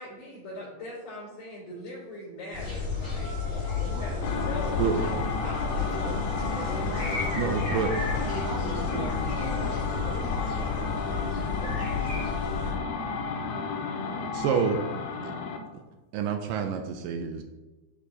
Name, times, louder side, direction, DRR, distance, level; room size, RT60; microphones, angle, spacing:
voice 1, 0.0-3.3 3.8-6.2 6.5-7.8, left 1 dB, 45° left, -13 dB, 3.6 m, -40 dB
sound 1, 2.5-12.7, left 5 dB, 20° left, 2.3 m, -32 dB
sound 2, 3.2-10.7, left 1 dB, 70° left, 3.6 m, -41 dB
sound 3, 4.2-15.7, left 4 dB, 85° left, 1.7 m, -33 dB
voice 2, 4.2-5.0 5.2-7.3 7.6-9.9 10.6-12.4, right 3 dB, 70° right, -2 dB, 3.2 m, -41 dB
voice 3, 7.4-7.9 14.3-14.8 15.2-15.3 15.7-15.8 16.1-17.4, right 7 dB, 85° right, 6 dB, 2.0 m, -28 dB
11.0 x 5.2 x 2.8 m, 1.1 s
omnidirectional pair, 4.4 m